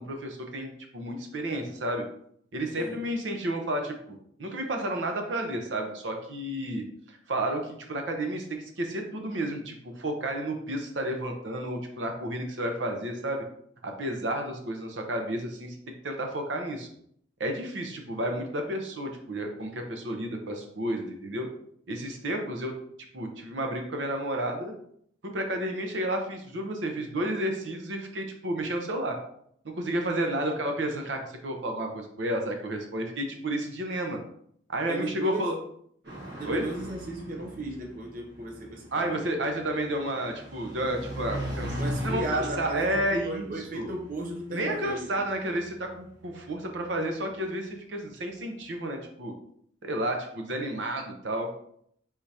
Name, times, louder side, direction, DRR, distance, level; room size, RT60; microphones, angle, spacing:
voice 1, 0.0-2.0 2.5-3.9 4.4-13.4 13.8-15.8 16.0-16.9 17.4-21.5 21.9-22.7 23.1-24.7 25.2-29.2 29.6-34.2 34.7-35.6 36.5-36.6 38.9-43.9 44.5-49.3 49.8-51.5, right 1 dB, 80° right, 0.8 m, -31 dB
voice 2, 2.7-3.1 34.9-35.5 36.4-39.2 41.7-45.1, right 2 dB, 45° right, 0.7 m, -35 dB
sound 1, 36.0-47.0, equal, 65° right, 1.7 m, -39 dB
4.7 x 3.6 x 2.8 m
head